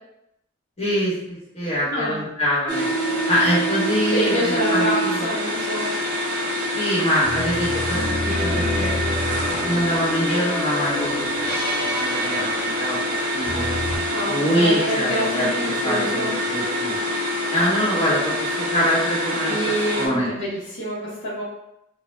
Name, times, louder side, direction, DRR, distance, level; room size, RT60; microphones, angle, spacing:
voice 1, 0.8-2.8 3.3-5.3 6.7-8.0 8.2-9.1 9.6-11.3 11.8-13.6 14.2-17.0 17.5-20.3, equal, 35° left, -8 dB, 1.1 m, -24 dB
sound 1, 2.7-20.1, equal, 45° right, 0.6 m, -25 dB
voice 2, 4.1-5.9 14.1-16.3 19.5-21.4, equal, 65° left, -11 dB, 0.8 m, -27 dB
sound 2, 7.2-14.0, left 1 dB, ahead, 1.2 m, -28 dB
2.2 x 2.0 x 3.1 m, 0.83 s
head